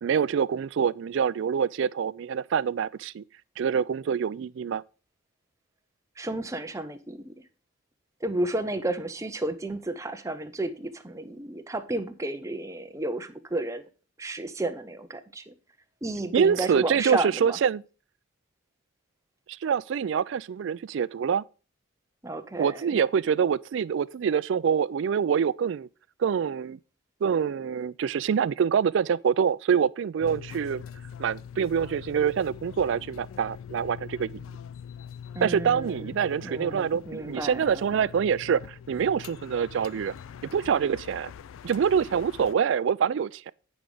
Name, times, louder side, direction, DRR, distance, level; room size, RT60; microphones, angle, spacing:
voice 1, 0.0-3.2 3.6-4.8 16.3-17.8 19.5-21.4 22.6-25.9 26.2-26.8 27.2-30.8 31.2-34.4 35.4-40.1 40.5-41.3 41.6-43.5, right 7 dB, 60° right, 0.3 m, -25 dB
voice 2, 6.2-7.4 8.2-13.8 14.2-15.5 16.0-17.6 22.2-23.0 35.3-38.0, right 2 dB, 15° right, 0.7 m, -32 dB
sound 1, 30.2-42.6, left 8 dB, 80° left, 0.3 m, -43 dB
8.9 x 5.2 x 4.8 m
head